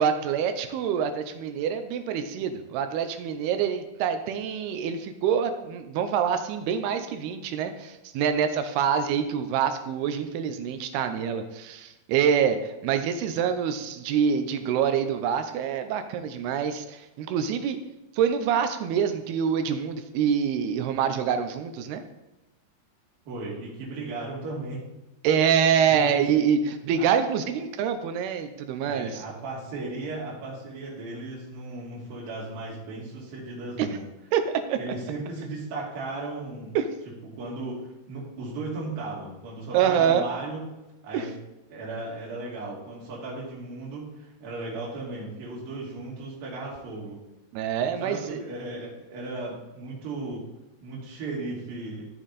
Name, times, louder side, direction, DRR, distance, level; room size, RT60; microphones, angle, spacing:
voice 1, 0.0-17.8 18.1-22.0 25.2-29.2 33.8-34.0 34.3-34.9 36.8-36.9 39.7-40.3 41.1-41.3 47.5-48.4, right 7 dB, 80° right, 8 dB, 2.6 m, -26 dB
voice 2, 23.3-24.8 25.9-26.2 27.0-27.1 28.8-34.1 34.7-36.8 37.4-40.6 41.0-41.3 41.7-47.2 48.0-50.4 50.8-52.1, right 2 dB, 60° right, -5 dB, 4.2 m, -36 dB
14.0 x 6.3 x 4.1 m, 1.0 s
omnidirectional pair, 4.8 m